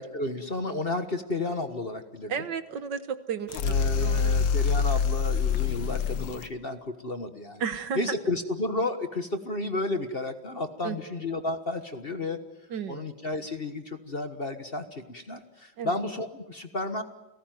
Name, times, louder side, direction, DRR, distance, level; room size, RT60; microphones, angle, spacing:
voice 1, 0.0-2.3 3.6-7.6 7.9-12.4 12.9-17.0, left 2 dB, 35° left, 9 dB, 1.4 m, -32 dB
voice 2, 2.3-4.4 7.6-8.0 10.8-11.0 12.7-13.1 15.8-16.0, right 7 dB, 65° right, 12 dB, 1.8 m, -33 dB
sound 1, 3.5-6.5, left 6 dB, 75° left, 1.8 m, -25 dB
30.0 x 18.0 x 9.3 m, 0.95 s
omnidirectional pair, 2.1 m